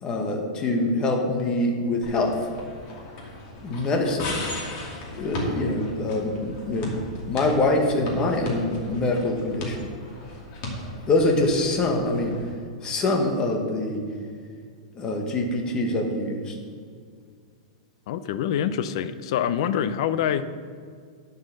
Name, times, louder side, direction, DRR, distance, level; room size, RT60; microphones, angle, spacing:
voice 1, 0.0-2.5 3.6-4.4 5.1-7.0 7.3-9.9 11.1-12.3 12.8-14.0 14.9-16.5, left 2 dB, 20° left, 2 dB, 1.3 m, -24 dB
sound 1, 2.0-12.5, left 1 dB, 40° left, 2.6 m, -36 dB
voice 2, 18.1-20.5, left 9 dB, 55° left, 13 dB, 0.6 m, -25 dB
11.5 x 5.5 x 6.5 m, 2.1 s
supercardioid pair, 155°, 3 cm